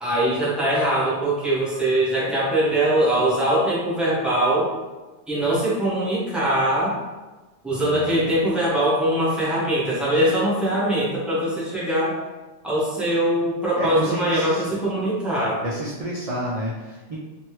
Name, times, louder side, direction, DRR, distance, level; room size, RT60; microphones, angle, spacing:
voice 1, 0.0-4.7 5.3-7.0 7.6-12.2 12.6-15.6, right 1 dB, ahead, -8 dB, 0.7 m, -22 dB
voice 2, 7.7-8.4 13.8-14.8 15.6-17.2, right 1 dB, 65° right, -5 dB, 0.3 m, -30 dB
3.1 x 2.5 x 3.0 m, 1.2 s
omnidirectional pair, 1.2 m